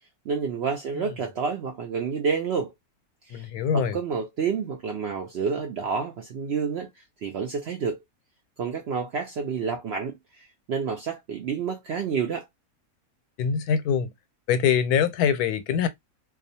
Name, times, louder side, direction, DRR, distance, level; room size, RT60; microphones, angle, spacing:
voice 1, 0.3-2.7 3.3-3.5 3.7-8.0 8.6-12.5, right 6 dB, 70° right, 0.6 m, -29 dB
voice 2, 3.3-4.0 13.4-14.1 14.5-15.9, left 7 dB, 85° left, 1.1 m, -24 dB
2.4 x 2.3 x 2.6 m
omnidirectional pair, 1.6 m